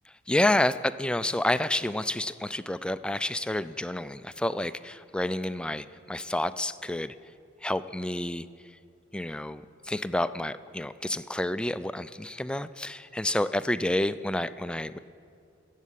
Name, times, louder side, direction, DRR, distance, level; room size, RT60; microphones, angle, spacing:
voice 1, 0.3-7.1 7.6-8.4 9.1-15.0, left 1 dB, 5° left, 14 dB, 0.3 m, -29 dB
20.5 x 8.4 x 8.2 m, 2.4 s
head